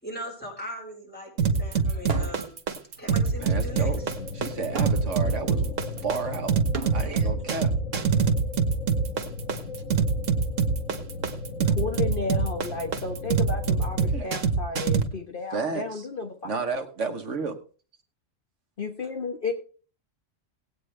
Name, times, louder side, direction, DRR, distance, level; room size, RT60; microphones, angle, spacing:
voice 1, 0.0-2.5 3.0-3.9, equal, 5° left, -2 dB, 4.7 m, -39 dB
sound 1, 1.4-15.0, right 5 dB, 85° right, 1.6 m, -24 dB
Water Bottle Thrown to Ground, 2.0-2.6 2.9-7.3 8.2-9.8, right 5 dB, 50° right, 1.4 m, -39 dB
sound 2, 3.4-14.3, left 3 dB, 80° left, 1.7 m, -37 dB
voice 2, 3.4-4.0 4.3-6.6 6.9-7.7 14.0-14.3 15.5-16.1 16.4-17.6, right 4 dB, 70° right, 7 dB, 1.4 m, -32 dB
voice 3, 11.8-16.6 18.8-19.5, left 4 dB, 45° left, 3 dB, 1.3 m, -33 dB
18.5 x 8.6 x 3.3 m, 0.39 s
omnidirectional pair, 1.3 m